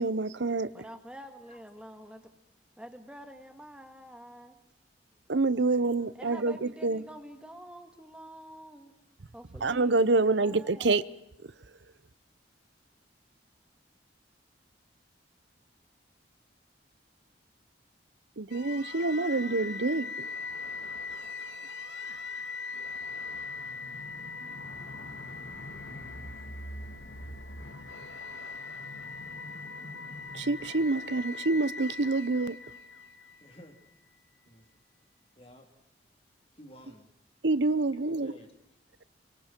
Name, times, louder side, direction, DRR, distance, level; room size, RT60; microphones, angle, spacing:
voice 1, 0.0-0.7 5.3-7.0 9.6-11.0 18.4-20.3 30.3-32.6 37.4-38.3, right 3 dB, 75° right, 0.8 m, -27 dB
voice 2, 0.7-2.3 2.8-4.6 6.1-8.9 9.3-9.9 10.4-11.0, equal, 5° right, 1.9 m, -47 dB
sound 1, 18.5-33.6, left 4 dB, 85° left, 2.4 m, -40 dB
voice 3, 33.4-33.8 34.5-34.7 35.4-35.7 36.6-37.1 38.1-38.5, equal, 30° left, 3.4 m, -52 dB
27.5 x 24.0 x 4.5 m
head